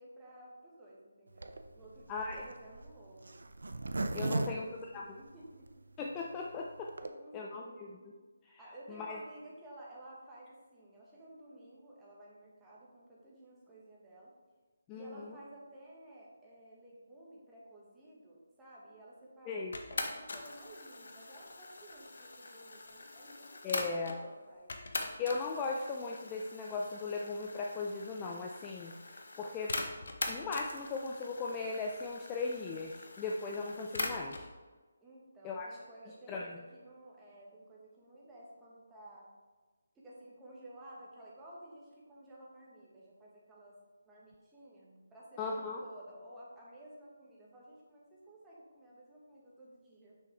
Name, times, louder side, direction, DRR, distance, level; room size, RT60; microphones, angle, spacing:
voice 1, 0.0-3.4 4.2-5.8 7.0-8.1 8.6-14.3 14.9-24.7 35.0-39.3 39.9-43.8 44.0-50.2, right 1 dB, 10° right, -6 dB, 1.4 m, -54 dB
Zipper (clothing), 1.4-5.7 6.2-6.3 6.4-6.5 6.8-7.1, right 2 dB, 75° right, 0.5 m, -37 dB
voice 2, 2.1-2.5 4.1-5.0 6.0-6.9 7.3-8.0 8.5-8.6 8.9-9.2 14.9-15.3 19.5-19.7 23.6-24.2 25.2-29.8 30.3-34.5 35.4-35.7 36.3-36.6 45.4-45.8, left 4 dB, 20° left, -1 dB, 0.4 m, -38 dB
sound 1, 19.7-24.2 24.7-34.5, left 2 dB, 65° left, 0.8 m, -42 dB
6.3 x 5.5 x 3.3 m, 1.3 s
figure-of-eight pair, 155°, 0 cm